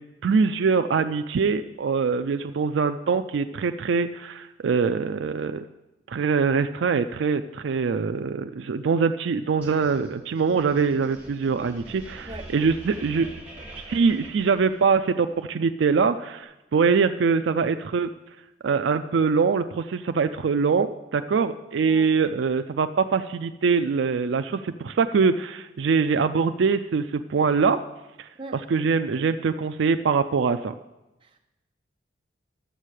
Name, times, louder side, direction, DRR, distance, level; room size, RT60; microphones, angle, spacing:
voice 1, 0.2-5.6 6.1-13.3 13.8-18.1 18.6-27.8 28.2-30.7, right 5 dB, 75° right, 9 dB, 0.4 m, -23 dB
sound 1, 9.6-15.2, right 1 dB, 10° right, 1.8 m, -44 dB
voice 2, 12.2-12.5 21.8-22.1 28.4-28.6 31.2-31.4, right 2 dB, 25° right, -1 dB, 1.2 m, -40 dB
11.5 x 7.4 x 6.4 m, 1.0 s
head